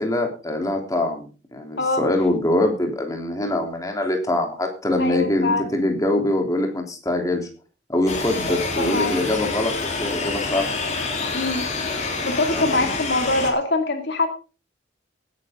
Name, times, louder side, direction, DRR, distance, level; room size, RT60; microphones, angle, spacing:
voice 1, 0.0-7.5 7.9-9.7 10.0-10.7 12.5-12.9, left 1 dB, 15° left, 2 dB, 3.3 m, -23 dB
voice 2, 5.0-5.8 8.5-9.2 11.3-11.6 12.2-14.3, left 2 dB, 60° left, 5 dB, 2.4 m, -24 dB
sound 1, 8.1-13.5, left 3 dB, 35° left, 3.4 m, -27 dB
18.5 x 9.7 x 3.7 m, 0.34 s
head